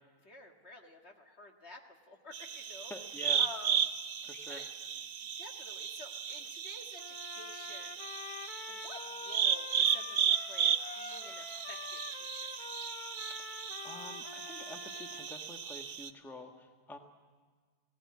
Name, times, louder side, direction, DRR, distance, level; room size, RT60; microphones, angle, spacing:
voice 1, 0.2-2.9 3.4-3.8 4.5-4.7 5.2-8.0 8.7-12.5, left 2 dB, 45° left, 2 dB, 1.9 m, -51 dB
sound 1, 2.3-16.1, right 8 dB, 75° right, 1.5 m, -35 dB
voice 2, 2.9-3.4 4.2-4.6 13.5-13.6 13.8-17.0, left 1 dB, ahead, 3 dB, 1.2 m, -47 dB
Trumpet, 7.0-15.3, left 6 dB, 85° left, 1.4 m, -47 dB
18.5 x 17.0 x 9.5 m, 1.5 s
omnidirectional pair, 1.6 m